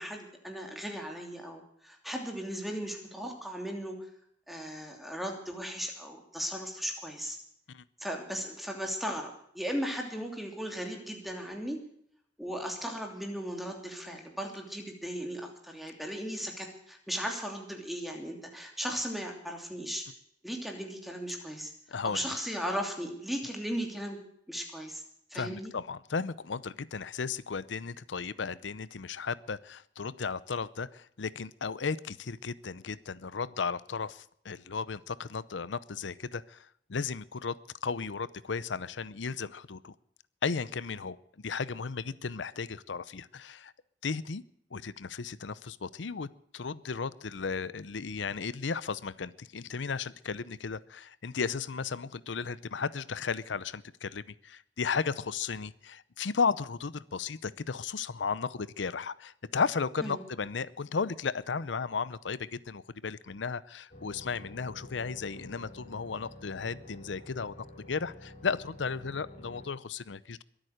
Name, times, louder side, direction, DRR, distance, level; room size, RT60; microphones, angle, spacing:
voice 1, 0.0-4.1 4.5-7.4 8.0-11.8 12.4-20.1 20.4-21.7 22.0-24.2 24.5-25.0 25.3-25.7 60.0-60.2, equal, ahead, 2 dB, 3.0 m, -37 dB
voice 2, 21.9-22.3 25.3-39.9 40.4-41.2 41.4-43.7 44.0-44.4 44.7-46.3 46.5-70.4, left 5 dB, 85° left, 18 dB, 0.7 m, -35 dB
sound 1, 63.9-69.7, left 1 dB, 40° left, 2.9 m, -49 dB
22.5 x 9.0 x 6.5 m, 0.69 s
head